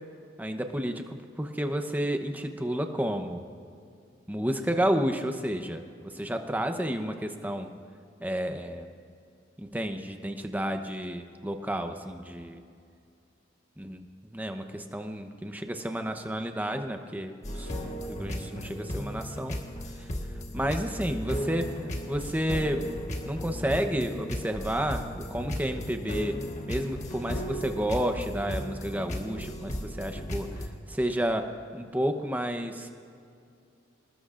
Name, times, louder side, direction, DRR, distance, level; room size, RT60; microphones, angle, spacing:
voice 1, 0.4-3.4 4.3-7.7 8.2-8.9 9.6-12.6 13.8-14.0 14.3-19.6 20.0-20.1 20.5-22.9 23.3-26.4 26.7-32.9, equal, 10° right, 6 dB, 0.8 m, -31 dB
sound 1, 17.4-30.7, equal, 35° left, 1.5 m, -35 dB
27.0 x 19.5 x 2.5 m, 2.4 s
head